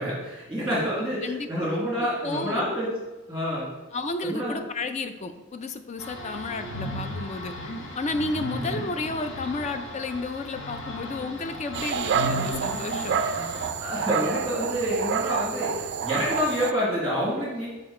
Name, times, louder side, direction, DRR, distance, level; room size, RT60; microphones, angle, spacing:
voice 1, 0.0-2.9 3.3-3.7 4.2-4.6 8.5-8.8 13.8-17.7, equal, 5° right, -6 dB, 1.7 m, -28 dB
voice 2, 1.2-1.7 2.2-2.7 3.9-7.5 8.0-13.2, left 3 dB, 35° left, 8 dB, 0.4 m, -32 dB
sound 1, 6.0-13.7, equal, 60° left, 0.9 m, -35 dB
Dog, 11.7-16.7, right 6 dB, 55° right, 0.3 m, -28 dB
6.8 x 3.9 x 4.2 m, 1.2 s
head